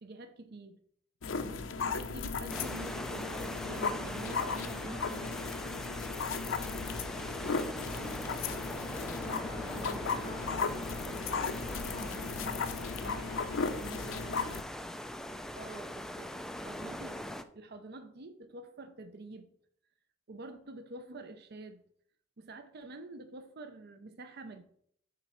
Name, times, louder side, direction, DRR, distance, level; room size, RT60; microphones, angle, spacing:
voice 1, 0.0-0.8 1.4-5.5 15.5-17.2 17.5-19.5 20.3-21.8 22.4-24.6, right 2 dB, 55° right, 0.6 m, -47 dB
sound 1, 1.2-14.6, left 5 dB, 75° left, 0.6 m, -36 dB
voice 2, 1.2-1.6 7.1-10.8 11.3-14.6, equal, 25° left, 3.3 m, -48 dB
sound 2, 2.5-17.4, left 1 dB, 5° left, 0.3 m, -41 dB
7.4 x 4.0 x 5.7 m
head